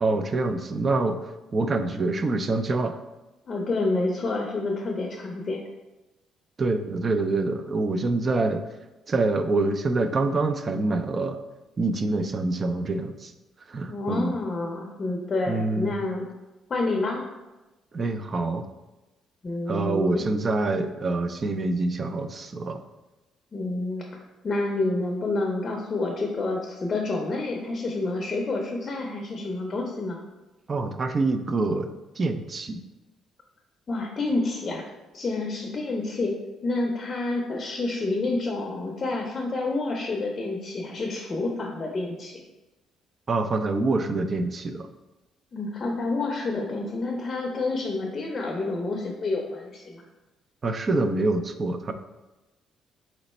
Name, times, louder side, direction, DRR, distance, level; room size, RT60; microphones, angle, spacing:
voice 1, 0.0-3.0 6.6-8.6 9.1-11.4 11.8-13.3 13.7-14.4 15.5-15.9 17.9-18.6 19.7-22.8 30.7-32.8 43.3-44.9 50.6-51.9, right 3 dB, 30° right, 8 dB, 0.4 m, -26 dB
voice 2, 3.5-5.6 13.9-16.2 16.7-17.2 19.4-20.3 23.5-24.0 24.4-30.2 33.9-34.8 35.1-36.3 36.6-42.3 45.5-50.0, left 2 dB, 30° left, 1 dB, 0.6 m, -28 dB
4.0 x 3.0 x 4.2 m, 1.1 s
cardioid pair, 130°, 0 cm